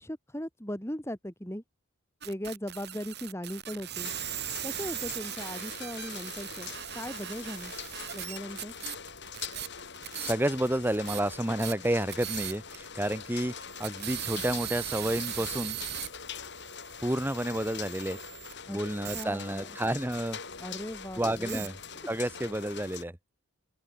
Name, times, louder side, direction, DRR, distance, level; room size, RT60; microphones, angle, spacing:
voice 1, 0.0-1.6 2.2-4.1 4.6-7.7 8.1-8.7 18.7-18.8 19.1-19.8 20.6-21.7, equal, 10° left, 3.3 m, -38 dB
sound 1, 2.2-10.7 10.9-12.8 13.1-13.2 13.6-18.5 19.0-19.2 21.5-21.7, right 11 dB, 50° right, 5.0 m, -39 dB
sound 2, 4.0-23.0, left 6 dB, 50° left, 4.8 m, -43 dB
voice 2, 10.2-13.5 13.8-15.8 17.0-18.2 18.7-20.4 21.2-21.7 22.1-23.1, right 1 dB, 10° right, 1.1 m, -30 dB
open air
head